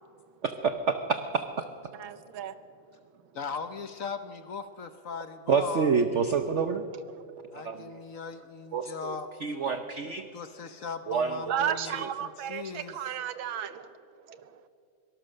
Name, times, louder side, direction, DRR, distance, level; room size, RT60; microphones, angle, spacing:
voice 1, 0.4-1.6 5.5-6.8 7.5-7.9 8.7-9.2 9.4-10.3 11.1-11.6, right 5 dB, 60° right, 8 dB, 0.7 m, -28 dB
voice 2, 1.9-2.5 7.1-7.2 11.5-13.9 14.3-14.6, right 9 dB, 75° right, 12 dB, 1.6 m, -34 dB
voice 3, 3.3-5.9 7.5-9.3 10.3-13.0, left 5 dB, 55° left, 9 dB, 1.0 m, -39 dB
23.0 x 18.5 x 6.6 m, 2.5 s
omnidirectional pair, 2.2 m